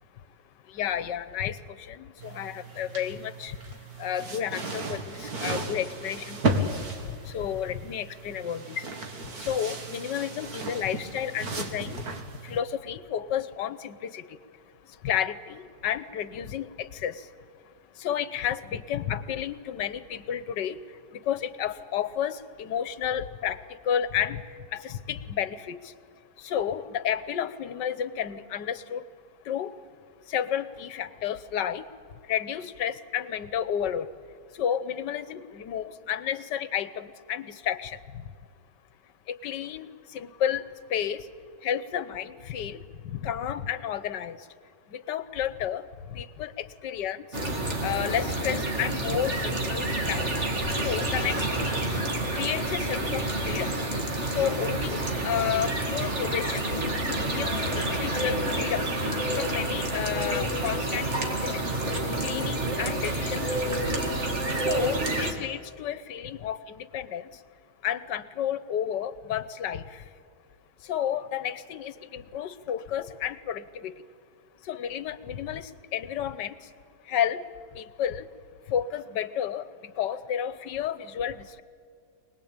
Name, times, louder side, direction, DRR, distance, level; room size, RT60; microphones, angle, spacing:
voice 1, 0.7-3.6 4.0-6.8 7.2-8.9 9.4-12.0 12.4-14.3 15.0-17.2 18.0-20.8 21.3-23.6 23.8-24.4 24.7-25.8 26.4-29.0 29.5-29.8 30.3-31.8 32.3-34.1 34.6-38.0 39.3-41.2 41.6-44.4 44.9-47.2 47.8-50.3 50.8-52.0 52.3-53.7 54.3-56.7 57.3-58.9 59.4-61.6 62.2-63.6 64.6-67.3 67.8-70.0 70.9-73.9 74.7-76.5 77.1-77.4 77.7-78.3 78.7-79.7 80.0-81.6, left 9 dB, 80° left, 15 dB, 1.6 m, -31 dB
sound 1, 2.2-12.6, right 2 dB, 60° right, 2.4 m, -34 dB
sound 2, 47.3-65.3, right 1 dB, 40° right, 2.5 m, -28 dB
24.5 x 19.5 x 8.9 m, 2.3 s
omnidirectional pair, 1.9 m